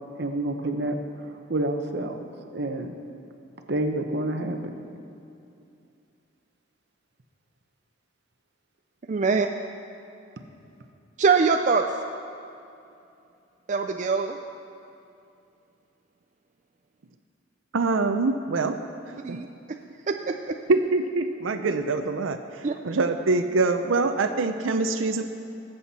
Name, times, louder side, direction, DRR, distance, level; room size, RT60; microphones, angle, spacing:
voice 1, 0.2-0.9 1.5-2.2 2.5-2.9 3.7-4.6, right 1 dB, 55° right, 5 dB, 1.0 m, -28 dB
voice 2, 9.1-9.5 11.2-11.8 13.7-14.4 19.2-19.5 20.1-20.6 22.6-22.8, right 5 dB, 40° right, 4 dB, 0.4 m, -23 dB
voice 3, 17.7-18.8 19.1-19.4 20.7-25.2, right 3 dB, 80° right, 7 dB, 0.6 m, -24 dB
20.0 x 7.9 x 4.2 m, 2.6 s
head